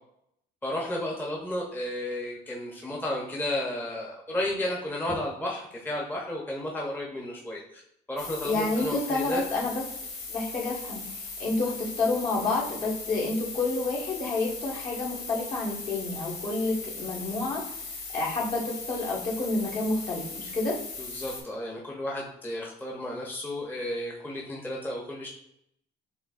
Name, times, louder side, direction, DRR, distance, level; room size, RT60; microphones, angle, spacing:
voice 1, 0.6-7.8 8.1-9.4 21.0-25.3, left 1 dB, 10° left, -3 dB, 0.8 m, -33 dB
sound 1, 8.2-21.4, left 3 dB, 70° left, 1.7 m, -39 dB
voice 2, 8.4-9.8 10.3-17.6 18.1-20.7, left 3 dB, 55° left, -5 dB, 1.7 m, -29 dB
5.7 x 3.5 x 2.5 m, 0.75 s
cardioid pair, 110°, 17 cm